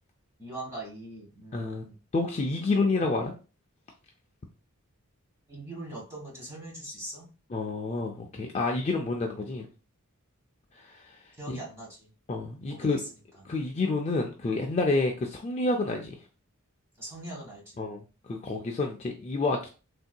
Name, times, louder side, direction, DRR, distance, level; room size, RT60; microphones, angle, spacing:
voice 1, 0.4-2.0 2.7-2.9 5.5-7.3 11.4-12.1 12.7-13.1 17.0-17.8, right 2 dB, 10° right, -4 dB, 1.3 m, -41 dB
voice 2, 1.5-1.8 2.1-3.3 7.5-9.7 10.8-11.2 11.5-11.6 12.3-13.0 13.5-16.2 17.8-19.7, left 3 dB, 30° left, 2 dB, 0.3 m, -29 dB
3.6 x 2.7 x 2.3 m, 0.34 s
head